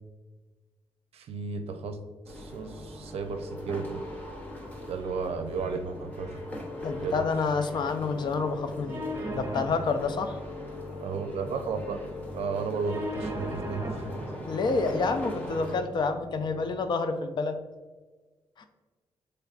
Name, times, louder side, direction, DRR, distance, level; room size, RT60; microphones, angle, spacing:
voice 1, 1.1-2.0 2.3-4.0 4.9-6.4 6.8-7.2 11.0-12.1 12.3-14.3, right 5 dB, 75° right, 7 dB, 0.5 m, -34 dB
sound 1, 2.2-15.8, left 1 dB, 15° left, 0.7 m, -40 dB
voice 2, 6.8-9.0 9.3-10.4 14.4-17.6 18.6-18.7, left 4 dB, 45° left, 8 dB, 0.4 m, -28 dB
sound 2, 8.9-16.9, equal, 25° right, 1.1 m, -39 dB
6.7 x 3.3 x 2.4 m, 1.4 s
wide cardioid pair, 145°, 10 cm